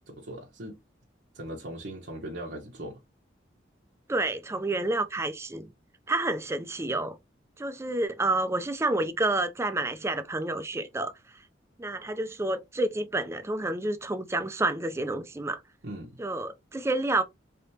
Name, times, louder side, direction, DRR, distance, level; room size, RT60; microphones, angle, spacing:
voice 1, 0.1-0.8 1.3-3.0 15.8-16.2, right 1 dB, 65° right, 0.9 m, -39 dB
voice 2, 4.1-5.7 6.1-7.2 7.6-11.1 11.8-15.6 16.2-17.2, right 2 dB, 15° right, 0.4 m, -29 dB
3.7 x 3.5 x 2.7 m
head